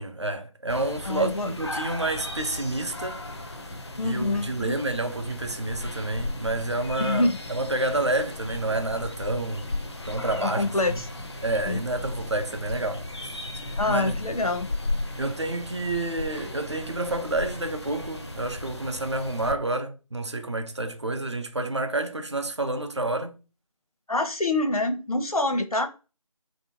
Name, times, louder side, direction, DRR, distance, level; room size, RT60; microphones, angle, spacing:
voice 1, 0.0-3.2 4.0-9.8 10.1-11.0 11.4-13.5 13.8-14.2 15.2-23.4, right 2 dB, 50° right, 0.5 m, -29 dB
sound 1, 0.7-19.5, left 2 dB, 45° left, 0.5 m, -36 dB
voice 2, 1.0-1.5 4.0-4.7 7.0-7.4 10.4-11.0 11.7-11.8 13.8-14.7 24.1-25.9, left 2 dB, 80° left, 0.8 m, -26 dB
3.3 x 2.7 x 2.7 m
figure-of-eight pair, 165°, 19 cm